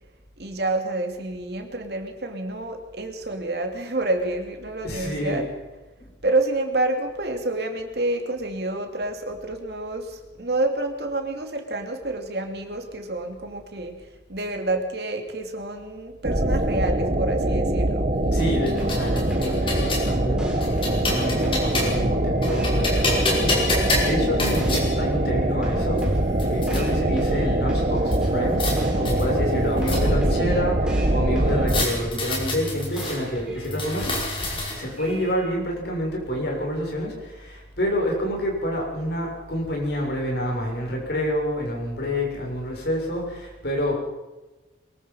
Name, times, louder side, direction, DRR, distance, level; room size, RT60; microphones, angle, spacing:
voice 1, 0.4-5.5 6.2-18.1 29.5-30.0 30.4-30.7, right 2 dB, 60° right, 4 dB, 2.9 m, -28 dB
voice 2, 4.8-5.4 6.0-6.1 18.3-26.1 26.4-28.7 29.0-34.2 34.7-44.0, equal, 60° left, -1 dB, 6.9 m, -28 dB
sound 1, 16.2-31.8, right 1 dB, 40° right, 1.5 m, -23 dB
sound 2, 18.4-20.1 20.6-22.1 22.4-24.9 25.6-25.7 26.0-26.8 28.1-28.7 29.0-30.3 31.7-33.2 33.6-35.0, left 2 dB, 30° left, 5.4 m, -28 dB
sound 3, 18.7-35.4, equal, 5° right, 6.0 m, -39 dB
23.5 x 21.5 x 5.7 m, 1.1 s
head